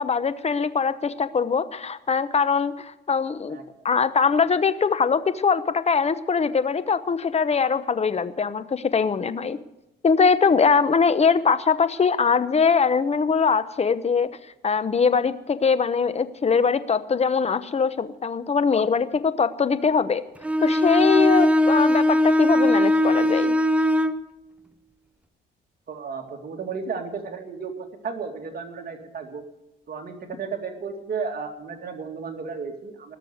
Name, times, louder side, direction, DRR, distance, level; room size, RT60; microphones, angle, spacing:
voice 1, 0.0-3.6 3.8-9.6 10.0-14.3 14.6-20.2 20.6-23.5, left 5 dB, 30° left, 13 dB, 0.9 m, -22 dB
Bowed string instrument, 20.4-24.2, left 1 dB, 5° right, 0.6 m, -19 dB
voice 2, 25.9-27.7 28.0-29.4 29.9-33.2, right 5 dB, 50° right, 3 dB, 2.4 m, -33 dB
18.5 x 6.8 x 8.0 m, 0.91 s
cardioid pair, 90°, 20 cm